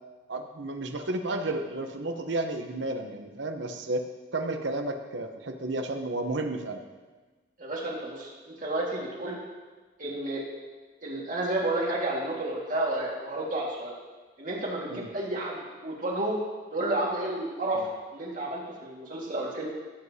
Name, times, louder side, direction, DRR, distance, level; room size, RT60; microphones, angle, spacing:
voice 1, 0.3-6.8 14.9-15.1 17.7-17.9, right 2 dB, 70° right, 5 dB, 0.9 m, -32 dB
voice 2, 7.6-9.4 10.0-10.4 11.0-14.0 14.4-16.4 16.7-19.7, right 1 dB, 45° right, -3 dB, 1.9 m, -31 dB
16.0 x 7.9 x 2.8 m, 1.3 s
head